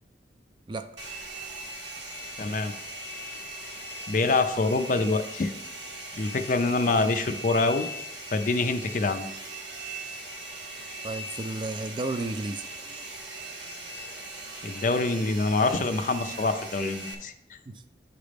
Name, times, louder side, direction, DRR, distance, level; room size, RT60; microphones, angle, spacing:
Domestic sounds home sounds, 1.0-17.1, right 1 dB, 70° right, 1.2 m, -39 dB
voice 1, 2.4-2.7 4.1-5.5 6.2-7.9 8.3-9.2 14.6-17.3, left 3 dB, 45° left, 9 dB, 0.4 m, -25 dB
voice 2, 11.0-12.7 17.7-17.8, right 2 dB, 25° right, 9 dB, 0.3 m, -32 dB
8.8 x 3.4 x 5.0 m, 0.86 s
head